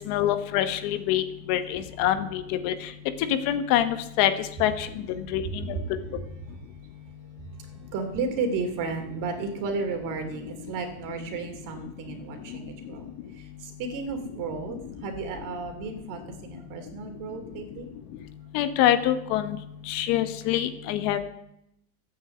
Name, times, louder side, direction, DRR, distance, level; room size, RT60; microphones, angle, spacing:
voice 1, 0.1-1.2 1.5-2.7 3.5-4.3 4.6-4.9 5.3-5.7 18.5-19.6 19.9-21.2, left 12 dB, 45° left, 9 dB, 1.3 m, -25 dB
voice 2, 7.9-13.0 13.3-14.8 15.0-17.9, right 4 dB, 45° right, 6 dB, 3.0 m, -33 dB
14.0 x 9.0 x 8.0 m, 0.80 s
supercardioid pair, 155°, 46 cm